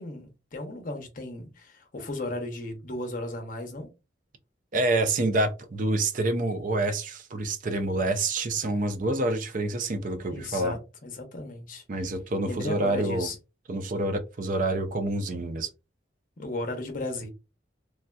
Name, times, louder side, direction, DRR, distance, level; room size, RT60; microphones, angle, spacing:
voice 1, 0.0-3.9 10.3-12.1 12.5-13.4 16.4-17.3, left 2 dB, 50° left, 0.8 m, -35 dB
voice 2, 4.7-10.8 11.9-13.3 13.7-15.7, right 2 dB, 45° right, 0.4 m, -27 dB
3.2 x 2.7 x 2.2 m
head